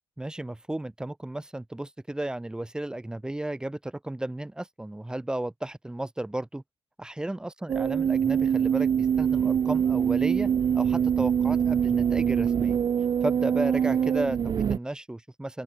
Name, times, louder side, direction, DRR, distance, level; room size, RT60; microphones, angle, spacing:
voice 1, 0.2-6.6 7.0-10.5 10.7-12.8 13.2-15.6, right 1 dB, 10° right, 2.2 m, -34 dB
sound 1, 7.7-14.8, right 8 dB, 40° right, 0.6 m, -24 dB
open air
cardioid pair, 155°, 10 cm